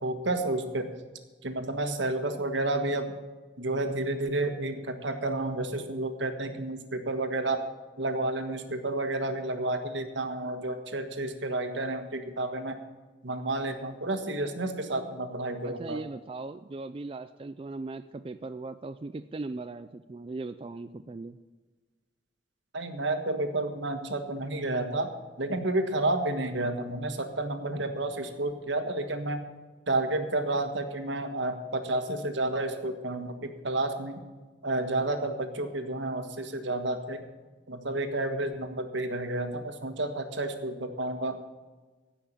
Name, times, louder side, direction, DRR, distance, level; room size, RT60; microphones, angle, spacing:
voice 1, 0.0-0.9 1.4-3.1 3.6-7.6 8.0-12.8 13.2-16.0 22.7-25.1 25.4-29.4 29.9-34.2 34.6-37.2 37.7-41.4, right 2 dB, 80° right, 7 dB, 1.5 m, -30 dB
voice 2, 15.6-21.4, right 3 dB, 30° right, 10 dB, 0.3 m, -39 dB
16.0 x 5.8 x 8.3 m, 1.3 s
head